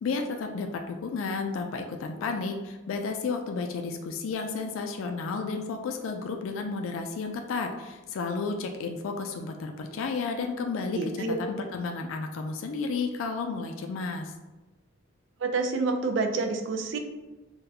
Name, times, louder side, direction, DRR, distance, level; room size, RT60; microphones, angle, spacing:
voice 1, 0.0-11.0 11.4-14.3, left 4 dB, 80° left, 4 dB, 0.3 m, -32 dB
voice 2, 10.9-11.3 15.4-17.0, right 3 dB, 65° right, 4 dB, 0.4 m, -28 dB
3.9 x 2.2 x 2.8 m, 1.1 s
head